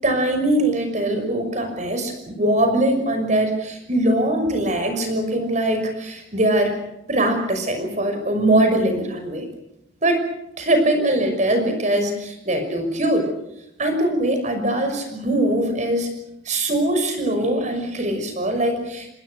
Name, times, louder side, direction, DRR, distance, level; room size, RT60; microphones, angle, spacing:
voice 1, 0.0-6.8 7.1-9.5 10.0-10.2 10.6-13.2 13.8-16.1 16.4-19.1, right 1 dB, 40° right, 6 dB, 5.9 m, -21 dB
27.5 x 20.5 x 6.5 m, 0.85 s
head